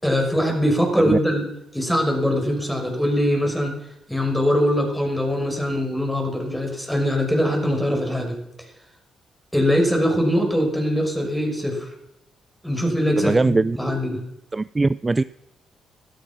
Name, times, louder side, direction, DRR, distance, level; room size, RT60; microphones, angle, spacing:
voice 1, 0.0-1.5 1.7-3.7 4.1-8.4 9.5-11.9 12.6-14.2, equal, 5° left, 2 dB, 6.2 m, -22 dB
voice 2, 13.2-13.8 14.5-15.2, right 3 dB, 25° right, 16 dB, 0.5 m, -20 dB
16.5 x 13.5 x 6.3 m, 0.86 s
cardioid pair, 70°, 0 cm